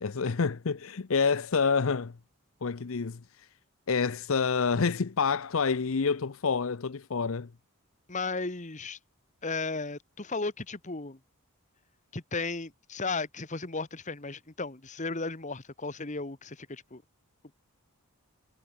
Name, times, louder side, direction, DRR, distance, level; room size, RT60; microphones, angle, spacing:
voice 1, 0.0-2.1 2.6-3.2 3.9-7.5, left 5 dB, 65° left, 0.6 m, -28 dB
voice 2, 8.1-9.0 9.4-11.2 12.1-17.0, left 3 dB, 35° left, 1.4 m, -35 dB
head